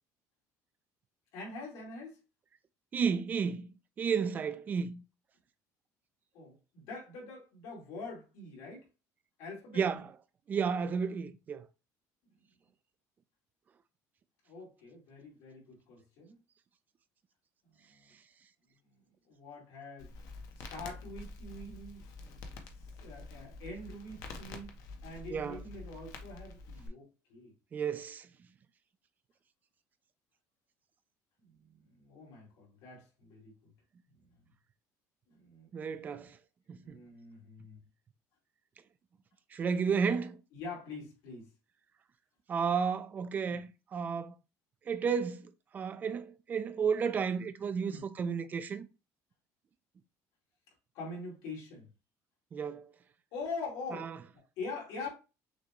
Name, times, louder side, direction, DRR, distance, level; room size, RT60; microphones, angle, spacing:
voice 1, 1.3-2.2 6.3-8.9 9.4-9.8 14.5-16.4 17.8-18.2 19.3-20.1 20.6-22.4 23.0-24.7 25.0-27.5 31.4-31.6 31.9-33.7 34.1-34.5 35.3-36.3 36.8-37.8 40.5-41.5 43.5-43.6 47.9-48.0 50.9-51.9 53.3-55.1, left 3 dB, 85° left, 2.5 m, -44 dB
voice 2, 2.9-3.7 4.0-5.0 9.7-10.1 10.5-11.7 25.3-25.6 27.7-28.3 35.7-36.4 36.7-37.0 39.5-40.4 42.5-44.3 44.9-48.9 52.5-52.9 53.9-54.2, right 6 dB, 25° right, 0.4 m, -32 dB
Crackle, 20.0-26.9, left 3 dB, 60° left, 0.9 m, -47 dB
6.4 x 2.3 x 2.9 m
cardioid pair, 165°, 7 cm